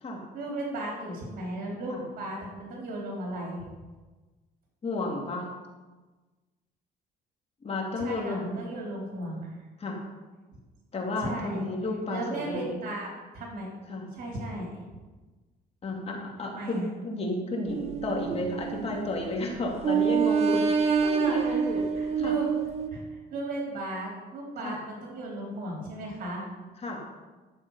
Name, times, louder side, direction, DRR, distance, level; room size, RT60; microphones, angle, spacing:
voice 1, 0.3-3.6 8.0-9.4 11.2-11.6 12.1-13.7 14.2-14.7 16.4-16.9 21.1-22.5 22.9-26.5, right 1 dB, 55° right, -2 dB, 3.7 m, -35 dB
voice 2, 4.8-5.5 7.6-8.6 9.8-10.0 10.9-12.8 13.9-14.1 15.8-21.9 22.2-22.3 24.6-24.8 26.8-27.0, left 2 dB, 35° left, 0 dB, 2.6 m, -32 dB
sound 1, 17.7-19.3 19.8-22.9, right 6 dB, 40° right, 0.9 m, -27 dB
12.0 x 7.0 x 5.5 m, 1.3 s
cardioid pair, 110°, 17 cm